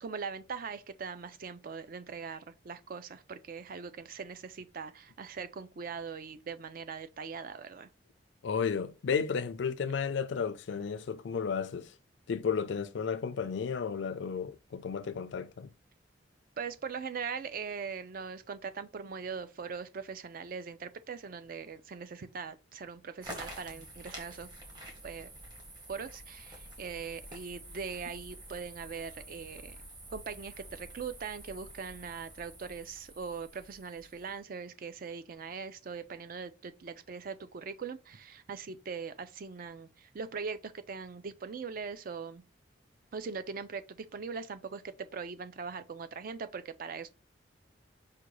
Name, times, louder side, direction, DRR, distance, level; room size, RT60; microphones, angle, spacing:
voice 1, 0.0-7.9 16.6-24.5 25.0-25.3 25.9-29.8 30.1-42.4 43.1-47.1, right 5 dB, 50° right, 0.4 m, -41 dB
voice 2, 8.4-11.9 12.3-15.7, left 6 dB, 70° left, 0.4 m, -33 dB
sound 1, 23.2-34.4, right 1 dB, 25° right, 1.0 m, -48 dB
4.9 x 2.2 x 3.1 m
head